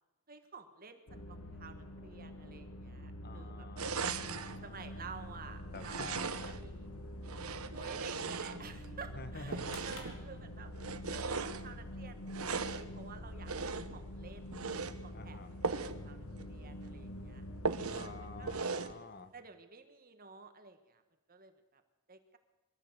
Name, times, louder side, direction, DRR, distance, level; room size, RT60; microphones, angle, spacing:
voice 1, 0.3-3.7 4.6-6.1 6.5-6.9 7.7-10.7 11.1-14.5 14.8-15.4 15.8-16.2 16.4-17.4 18.0-18.6 19.3-21.0 21.3-21.8 22.1-22.4, right 5 dB, 40° right, 8 dB, 1.5 m, -52 dB
sound 1, 1.1-18.6, left 1 dB, 90° left, 1.9 m, -46 dB
voice 2, 3.2-5.0 5.7-6.6 9.2-9.8 15.1-15.5 17.9-19.3, left 3 dB, 45° left, 11 dB, 1.3 m, -49 dB
sound 2, 3.8-4.6 5.7-6.7 7.2-8.9 9.5-10.2 10.8-11.6 12.3-12.9 13.5-14.0 14.5-15.0 15.6-16.0 16.4-16.5 16.8-16.9 17.6-18.1 18.5-19.0, right 4 dB, 80° right, 1.2 m, -38 dB
sound 3, 9.6-11.0, left 3 dB, 70° left, 4.2 m, -53 dB
22.5 x 14.5 x 8.0 m, 1.1 s
head